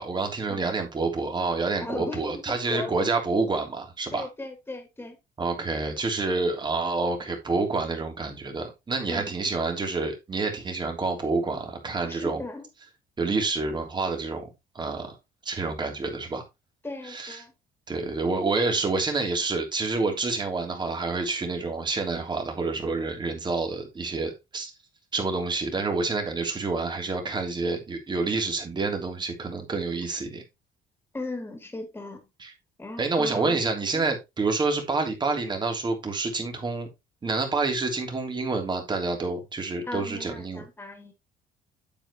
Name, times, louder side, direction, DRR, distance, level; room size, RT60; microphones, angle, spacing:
voice 1, 0.0-4.3 5.4-12.4 13.2-14.5 14.7-15.1 15.4-16.4 17.1-17.4 17.9-24.7 25.1-30.4 32.4-32.5 33.0-36.9 37.2-40.6, right 3 dB, 25° right, 3.2 m, -28 dB
voice 2, 1.8-2.4 2.7-2.9 4.1-5.2 9.1-9.4 12.0-12.7 16.8-17.5 31.1-32.3 32.8-33.6 33.9-34.1 39.8-41.1, left 2 dB, 10° left, 3.0 m, -37 dB
8.9 x 7.8 x 3.1 m
cardioid pair, 110°, 17 cm